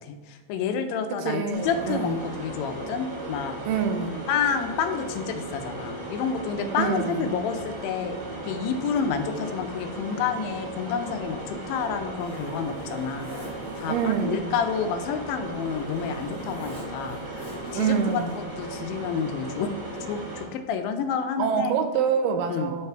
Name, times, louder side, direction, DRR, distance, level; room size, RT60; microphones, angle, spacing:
voice 1, 0.0-3.6 4.3-8.2 8.4-18.2 18.6-19.7 20.1-21.7 22.5-22.7, left 6 dB, 90° left, 8 dB, 2.4 m, -29 dB
voice 2, 1.1-2.2 3.7-4.3 6.8-7.4 13.9-14.5 17.7-18.5 21.4-22.9, right 7 dB, 80° right, 6 dB, 2.1 m, -26 dB
sound 1, 1.5-20.4, right 1 dB, 40° right, 1.1 m, -36 dB
Zipper (clothing), 11.2-18.6, equal, 5° left, 0.7 m, -46 dB
6.7 x 4.8 x 4.5 m, 1.3 s
omnidirectional pair, 4.0 m